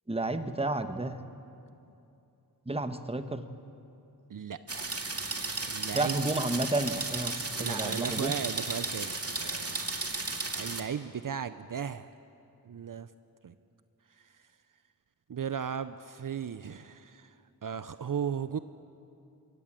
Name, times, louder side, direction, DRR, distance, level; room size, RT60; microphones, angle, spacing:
voice 1, 0.1-1.2 2.7-3.4 5.9-8.3, right 2 dB, 15° right, 9 dB, 1.2 m, -31 dB
voice 2, 4.3-5.0 5.3-5.4 5.7-6.3 7.6-9.8 10.6-12.1 12.6-13.1 13.4-13.5 14.2-14.3 15.3-17.3 17.6-18.6, right 7 dB, 60° right, 12 dB, 0.6 m, -36 dB
sound 1, 4.7-10.8, right 3 dB, 40° right, 2.1 m, -34 dB
23.5 x 17.5 x 7.6 m, 2.7 s
wide cardioid pair, 55°, 37 cm